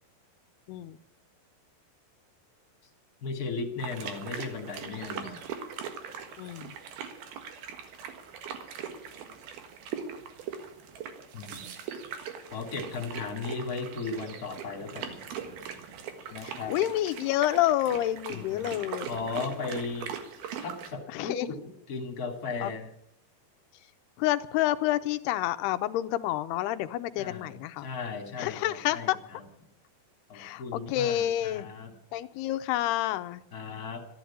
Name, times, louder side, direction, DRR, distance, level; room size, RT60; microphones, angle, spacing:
voice 1, 3.2-5.5 11.3-11.7 12.5-15.2 16.3-16.8 18.3-20.1 20.6-22.9 27.2-29.4 30.3-31.9 33.5-34.0, left 4 dB, 25° left, 3 dB, 2.3 m, -36 dB
sound 1, 3.8-20.9, right 7 dB, 65° right, 3.3 m, -41 dB
voice 2, 6.4-6.7 16.4-19.1 21.1-21.5 22.6-22.7 24.2-27.9 28.4-29.2 30.3-31.7 32.1-33.4, left 13 dB, 80° left, 12 dB, 2.6 m, -29 dB
14.0 x 11.5 x 8.5 m, 0.76 s
omnidirectional pair, 4.9 m